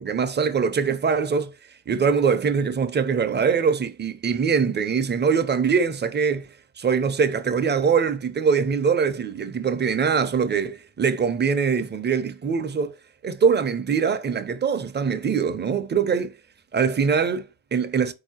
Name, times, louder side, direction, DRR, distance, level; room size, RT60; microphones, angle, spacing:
voice 1, 0.0-1.5 1.9-6.5 6.8-13.0 13.2-16.3 16.7-18.1, right 6 dB, 25° right, 0.5 m, -23 dB
4.3 x 2.8 x 4.3 m
cardioid pair, 100°, 42 cm